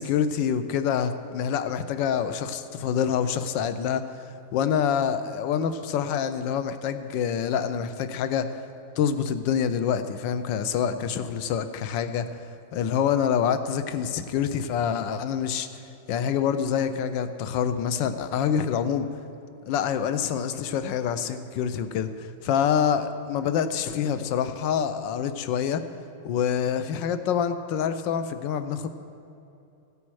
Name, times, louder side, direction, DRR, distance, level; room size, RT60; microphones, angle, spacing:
voice 1, 0.0-4.2 4.5-8.5 9.0-12.4 12.7-15.7 16.1-19.1 19.7-25.8 26.2-28.9, left 8 dB, 75° left, 10 dB, 1.2 m, -26 dB
15.5 x 8.6 x 4.7 m, 2.8 s
omnidirectional pair, 2.3 m